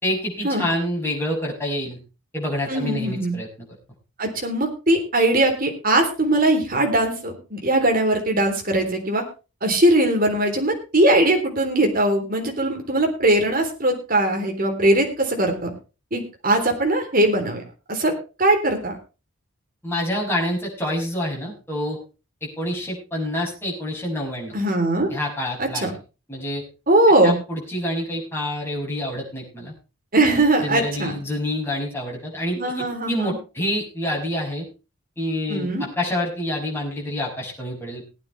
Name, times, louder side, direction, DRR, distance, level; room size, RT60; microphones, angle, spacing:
voice 1, 0.0-2.0 2.3-3.5 19.8-22.0 22.4-24.5 25.1-25.9 26.3-26.6 27.2-29.7 30.3-34.6 35.2-38.0, left 1 dB, 10° left, -3 dB, 6.3 m, -27 dB
voice 2, 2.7-3.3 4.2-9.2 9.6-15.7 16.1-17.6 17.9-18.1 18.4-19.0 24.5-25.1 25.6-25.9 26.9-27.3 30.1-31.1 32.6-33.4 35.5-35.8, right 1 dB, 40° right, 3 dB, 3.5 m, -20 dB
20.5 x 9.5 x 3.4 m, 0.31 s
head